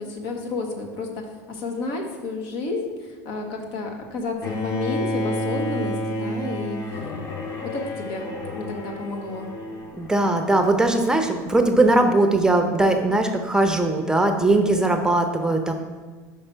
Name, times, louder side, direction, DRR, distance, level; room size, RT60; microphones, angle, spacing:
voice 1, 0.0-6.8 7.6-9.5, left 3 dB, 65° left, 2 dB, 1.1 m, -31 dB
Bowed string instrument, 4.4-10.5, left 1 dB, 40° left, 1.4 m, -30 dB
voice 2, 9.9-15.7, right 2 dB, 10° right, 5 dB, 0.6 m, -20 dB
5.6 x 4.8 x 4.4 m, 1.4 s
hypercardioid pair, 85°, 9 cm